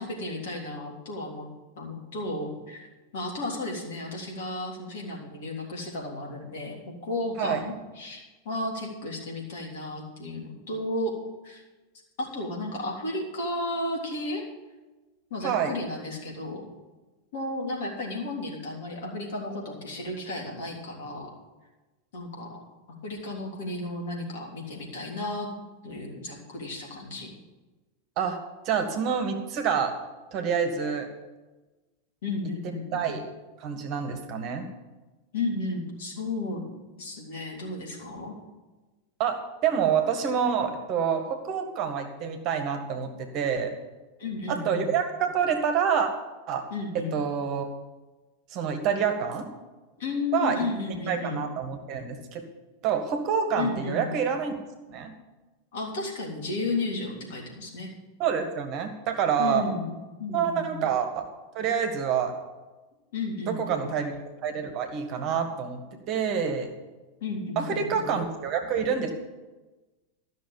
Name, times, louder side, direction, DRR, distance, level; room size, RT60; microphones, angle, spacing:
voice 1, 0.0-1.5 1.8-2.9 3.1-11.1 11.4-11.6 12.2-14.4 15.3-16.7 17.3-21.3 22.1-22.6 23.0-25.5 25.8-27.3 32.2-33.1 35.3-36.6 37.0-38.3 44.2-44.9 46.7-47.2 50.0-51.5 53.6-54.2 55.7-57.9 59.4-60.9 63.1-63.9 67.2-68.2, left 2 dB, 55° left, -1 dB, 3.4 m, -33 dB
voice 2, 28.7-29.9 30.3-31.1 32.9-33.2 33.6-34.6 39.2-43.7 44.5-46.1 46.5-46.6 47.1-47.7 48.5-49.4 50.3-50.6 51.1-52.4 52.8-54.5 54.9-55.1 58.2-59.7 60.3-61.2 61.6-62.3 63.5-65.8 66.1-66.7 67.6-69.1, right 7 dB, 40° right, 6 dB, 1.7 m, -27 dB
13.5 x 6.5 x 8.8 m, 1.2 s
figure-of-eight pair, 90°, 0 cm